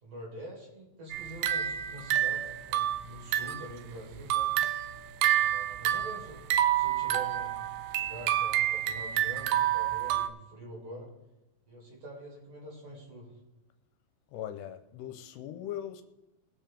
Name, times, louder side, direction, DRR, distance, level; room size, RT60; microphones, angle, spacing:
voice 1, 0.0-4.5 5.2-6.4 6.7-7.6 8.0-11.1 11.7-13.4, right 1 dB, 45° right, -3 dB, 5.2 m, -45 dB
sound 1, 1.1-3.7 4.1-10.3, right 11 dB, 80° right, 2.1 m, -29 dB
voice 2, 14.3-16.0, left 11 dB, 85° left, 8 dB, 2.7 m, -39 dB
21.0 x 7.6 x 3.5 m, 0.93 s
omnidirectional pair, 4.9 m